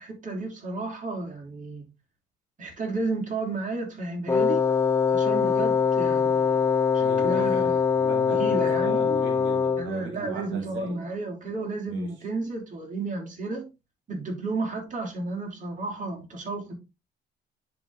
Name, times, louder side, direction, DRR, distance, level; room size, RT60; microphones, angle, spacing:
voice 1, 0.0-1.9 2.6-4.6 5.1-6.6 6.9-7.7 8.3-9.1 9.8-13.7 14.1-16.7, right 3 dB, 40° right, 3.4 m, -32 dB
Wind instrument woodwind instrument, 4.3-10.0, left 6 dB, 15° left, 0.7 m, -23 dB
voice 2, 7.0-11.0 11.9-12.1, right 4 dB, 75° right, 1.9 m, -39 dB
10.0 x 4.0 x 3.7 m
cardioid pair, 90°, 20 cm